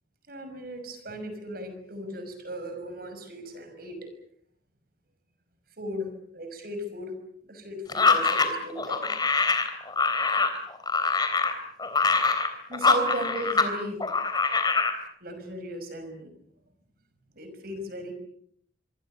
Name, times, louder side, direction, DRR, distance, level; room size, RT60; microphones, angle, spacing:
voice 1, 0.3-4.1 5.8-7.2 7.4-9.2 12.7-14.0 15.2-16.3 17.3-18.1, equal, 50° right, 8 dB, 5.8 m, -36 dB
sound 1, 7.9-13.7 14.0-15.0, left 4 dB, 20° left, 3.5 m, -24 dB
26.0 x 25.0 x 6.8 m, 0.66 s
head